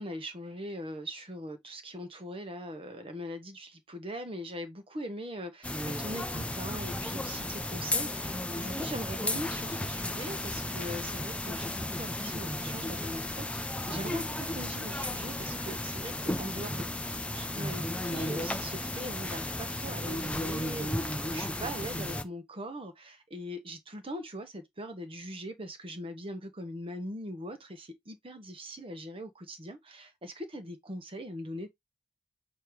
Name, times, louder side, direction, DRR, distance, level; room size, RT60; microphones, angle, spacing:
voice 1, 0.0-16.9 17.3-31.7, equal, 30° right, 1.1 m, -41 dB
sound 1, 5.6-22.2, left 1 dB, 5° left, 0.7 m, -34 dB
6.8 x 3.0 x 4.7 m
head